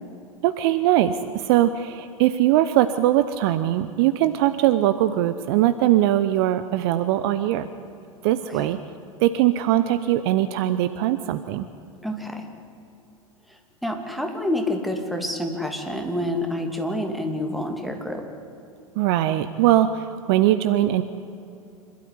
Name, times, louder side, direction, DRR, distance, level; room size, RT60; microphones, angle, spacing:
voice 1, 0.4-7.7 8.2-8.8 9.2-11.7 19.0-21.0, right 13 dB, 45° right, 12 dB, 0.8 m, -21 dB
voice 2, 12.0-12.5 13.5-18.2, left 1 dB, ahead, 3 dB, 2.8 m, -28 dB
26.0 x 12.5 x 9.8 m, 2.7 s
figure-of-eight pair, 90°, 18 cm